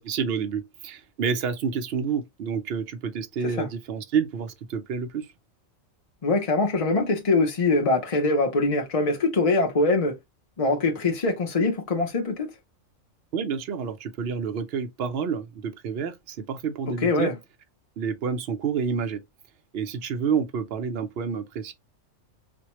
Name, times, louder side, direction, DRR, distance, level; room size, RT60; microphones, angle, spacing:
voice 1, 0.0-5.3 13.3-17.3 18.0-19.2 19.7-21.7, right 6 dB, 60° right, 0.8 m, -29 dB
voice 2, 6.2-10.2 10.6-12.5 17.0-17.3, left 3 dB, 40° left, 0.6 m, -23 dB
4.3 x 2.2 x 2.9 m
omnidirectional pair, 1.4 m